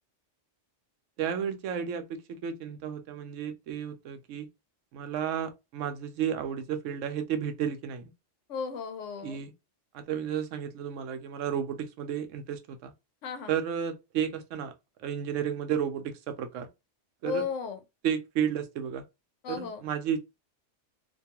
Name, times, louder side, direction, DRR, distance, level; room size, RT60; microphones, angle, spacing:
voice 1, 1.2-4.5 4.9-8.1 9.2-9.5 9.9-12.9 13.5-14.7 15.0-16.7 17.2-17.5 18.0-19.0 19.5-20.2, right 8 dB, 85° right, 0.9 m, -32 dB
voice 2, 8.5-9.4 13.2-13.5 17.2-17.8 19.4-19.8, left 6 dB, 80° left, 0.9 m, -34 dB
2.5 x 2.3 x 2.8 m
omnidirectional pair, 1.3 m